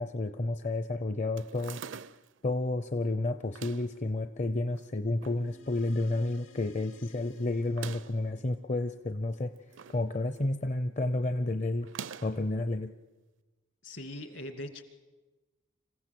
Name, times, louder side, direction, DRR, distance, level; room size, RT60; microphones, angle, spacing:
voice 1, 0.0-1.8 2.4-9.5 9.9-11.9 12.2-12.9, left 2 dB, 35° left, 10 dB, 0.7 m, -31 dB
sound 1, 1.4-2.4 3.4-4.0 4.8-5.4 5.8-5.9 6.1-6.2 7.6-8.3 9.3-10.1 10.4-10.7 11.8-12.5, right 7 dB, 70° right, 0.6 m, -44 dB
sound 2, 5.3-10.2, left 1 dB, 80° left, 2.2 m, -57 dB
voice 2, 13.8-14.8, left 1 dB, 65° left, 8 dB, 2.4 m, -41 dB
26.5 x 15.5 x 7.7 m, 1.2 s
head